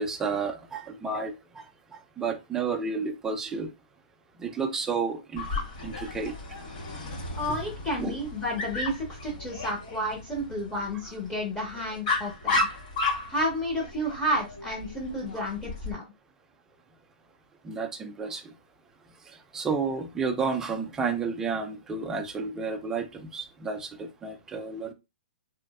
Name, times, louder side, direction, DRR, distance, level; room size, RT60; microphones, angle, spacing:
voice 1, 0.0-1.6 1.9-3.7 4.4-5.5 5.8-6.3 8.0-8.2 15.3-15.5 17.6-18.4 19.5-24.9, right 5 dB, 10° right, 0.3 m, -31 dB
Dog, 5.3-15.9, left 2 dB, 40° left, 1.9 m, -34 dB
voice 2, 7.3-12.7 13.3-16.0, equal, 10° left, 0.8 m, -31 dB
3.0 x 2.5 x 2.3 m
hypercardioid pair, 160°, 5 cm